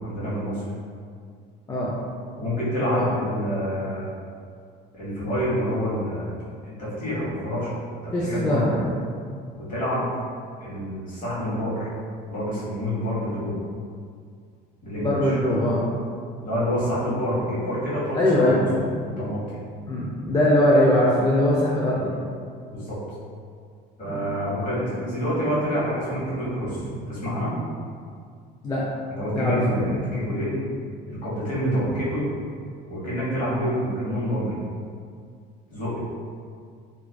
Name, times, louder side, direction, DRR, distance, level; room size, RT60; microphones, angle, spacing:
voice 1, 0.0-0.6 2.3-4.1 4.9-6.3 6.6-7.7 8.0-8.7 9.5-10.1 10.6-11.9 12.3-13.6 14.8-15.3 16.4-18.7 19.0-19.6 22.7-23.0 24.0-27.5 29.1-30.6 31.1-32.3 32.9-34.6 35.7-36.0, equal, 40° left, -9 dB, 1.2 m, -27 dB
voice 2, 8.1-8.9 15.0-15.9 18.1-18.8 19.9-22.2 24.1-24.3 28.6-28.8 29.3-30.0, left 1 dB, 20° left, -7 dB, 0.3 m, -21 dB
2.4 x 2.3 x 2.2 m, 2.2 s
cardioid pair, 105°, 20 cm